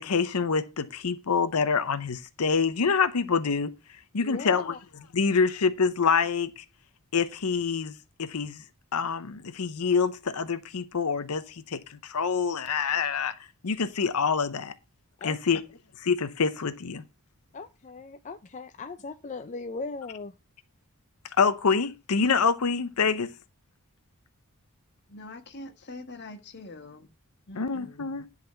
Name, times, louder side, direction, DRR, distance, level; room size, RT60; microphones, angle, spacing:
voice 1, 0.0-3.7 4.1-4.7 5.1-6.6 7.1-7.9 8.2-8.6 8.9-13.3 13.6-14.7 15.2-15.6 16.0-17.0 21.4-23.3 27.5-28.3, left 5 dB, 85° left, 0.7 m, -26 dB
voice 2, 4.2-4.8 15.2-15.6 17.5-20.3, left 3 dB, 35° left, 0.4 m, -39 dB
voice 3, 25.1-27.1 27.5-28.1, left 2 dB, 50° left, 1.5 m, -44 dB
10.5 x 4.1 x 6.7 m
head